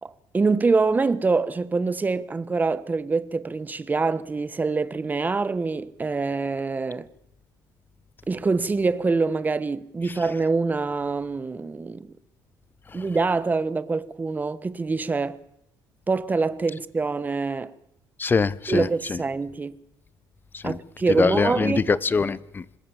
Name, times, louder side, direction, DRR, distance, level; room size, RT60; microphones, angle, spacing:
voice 1, 0.0-7.1 8.3-12.1 12.9-15.4 16.1-17.7 18.7-19.8 20.6-21.9, right 4 dB, 20° right, 1.3 m, -25 dB
voice 2, 18.2-18.9 20.6-20.8 21.2-22.6, left 4 dB, 25° left, 1.0 m, -23 dB
26.0 x 19.5 x 7.2 m
cardioid pair, 105°, 8 cm